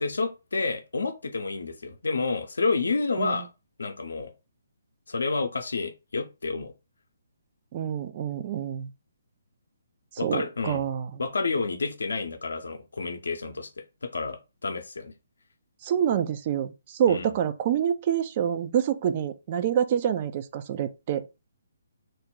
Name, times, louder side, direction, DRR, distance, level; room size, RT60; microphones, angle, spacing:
voice 1, 0.0-3.5 3.8-4.3 5.1-6.7 10.2-10.9 11.2-13.7 14.0-15.1 17.1-17.4, left 4 dB, 75° left, 0.6 m, -29 dB
voice 2, 7.7-8.9 10.2-11.2 15.8-21.3, right 9 dB, 40° right, 0.3 m, -27 dB
2.5 x 2.0 x 3.8 m
figure-of-eight pair, 140°, 0 cm